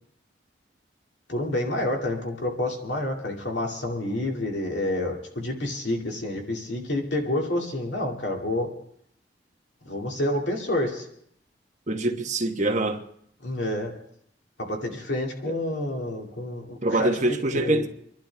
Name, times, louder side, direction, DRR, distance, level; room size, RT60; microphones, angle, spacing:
voice 1, 1.3-8.7 9.9-11.1 13.4-13.9 14.6-17.2 17.5-17.8, left 1 dB, 75° left, 2.3 m, -28 dB
voice 2, 11.9-13.0 15.5-15.6 16.8-17.9, right 2 dB, 40° right, 1.2 m, -24 dB
27.0 x 12.0 x 3.4 m
head